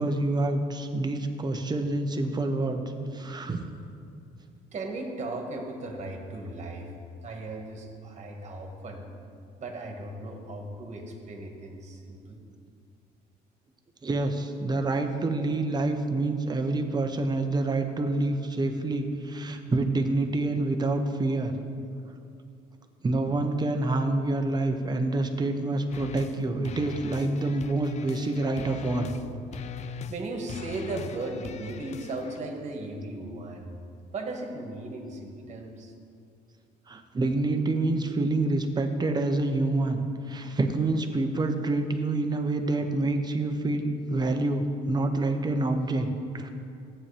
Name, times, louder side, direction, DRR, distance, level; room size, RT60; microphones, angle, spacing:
voice 1, 0.0-2.8 3.1-3.6 14.0-21.5 23.0-29.1 36.9-40.0 40.3-46.5, right 2 dB, 25° right, 6 dB, 0.9 m, -27 dB
voice 2, 4.7-6.9 7.2-9.0 9.6-12.4 30.1-33.7 34.1-35.9, right 2 dB, 40° right, 2 dB, 1.7 m, -36 dB
sound 1, 25.9-26.4 26.6-29.2 29.5-30.2 30.5-32.4, left 7 dB, 40° left, 0.4 m, -41 dB
13.5 x 8.8 x 3.4 m, 2.5 s
cardioid pair, 110°, 17 cm